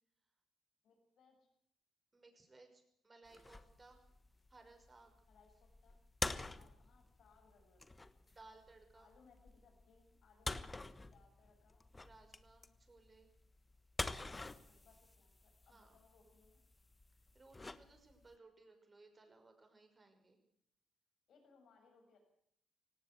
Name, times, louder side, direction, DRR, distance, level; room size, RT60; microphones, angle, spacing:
voice 1, 0.8-1.5 5.3-8.3 8.9-11.9 14.3-16.6 21.3-22.2, left 5 dB, 75° left, 4 dB, 7.0 m, -69 dB
voice 2, 2.1-4.1 4.5-5.1 8.3-9.1 12.0-13.3 15.7-16.0 17.3-20.4, right 3 dB, 30° right, 6 dB, 5.8 m, -62 dB
sound 1, 3.3-18.4, left 2 dB, 20° left, 1.2 m, -47 dB
18.0 x 17.5 x 8.2 m, 0.69 s
cardioid pair, 70°, 0 cm